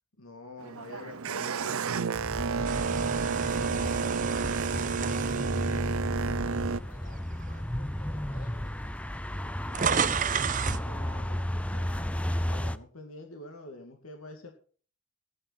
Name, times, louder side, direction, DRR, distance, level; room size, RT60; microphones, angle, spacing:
voice 1, 0.2-1.9 9.4-9.8 10.8-14.5, left 2 dB, 85° left, 3 dB, 2.5 m, -47 dB
Boat Water vehicle, 0.6-6.8, right 5 dB, 85° right, 0.6 m, -31 dB
sound 1, 2.1-12.8, equal, 5° left, 0.5 m, -33 dB
sound 2, 2.6-6.9 7.4-7.6 8.5-8.6 8.8-10.9, right 6 dB, 35° right, 0.6 m, -32 dB
voice 2, 2.7-9.0 9.7-11.1, left 1 dB, 40° left, 3 dB, 5.7 m, -54 dB
16.0 x 11.0 x 4.3 m, 0.41 s
head